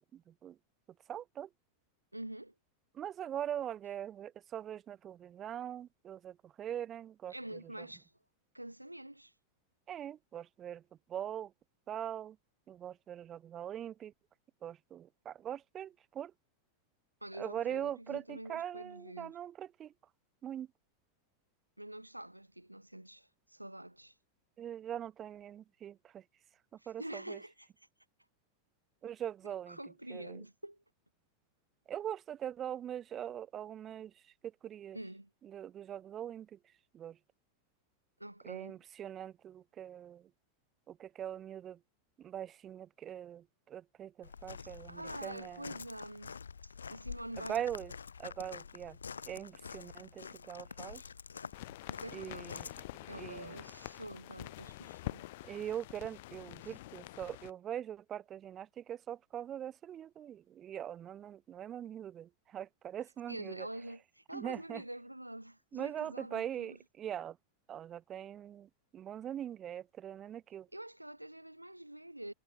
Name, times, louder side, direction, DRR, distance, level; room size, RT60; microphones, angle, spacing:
voice 1, 0.1-0.6 1.1-1.5 2.9-7.3 9.9-10.8 11.1-11.5 11.9-12.4 12.7-14.1 14.6-16.3 17.4-19.9 20.4-20.7 24.6-26.2 26.9-27.0 27.3-27.4 29.0-29.8 30.1-30.4 31.9-34.1 34.6-35.0 35.5-36.6 36.9-37.2 38.4-40.2 40.9-41.8 42.2-45.6 47.5-47.9 48.2-49.0 49.3-51.0 52.1-52.7 53.1-53.6 55.5-63.7 64.3-64.8 65.7-67.4 67.7-70.7, right 10 dB, 25° right, 0.9 m, -42 dB
voice 2, 2.1-2.5 7.3-8.1 8.5-9.3 17.2-19.4 21.8-24.2 26.8-27.9 29.4-30.8 34.9-35.3 38.2-38.8 44.6-47.6 51.9-52.7 53.1-55.3 56.6-56.8 63.3-66.8 70.7-72.3, right 1 dB, 85° right, 2.1 m, -46 dB
Walk footsteps, 44.2-52.8, left 6 dB, 70° left, 1.2 m, -47 dB
sound 1, 51.5-57.5, left 18 dB, 50° left, 7.7 m, -46 dB
figure-of-eight pair, 90°, 0 cm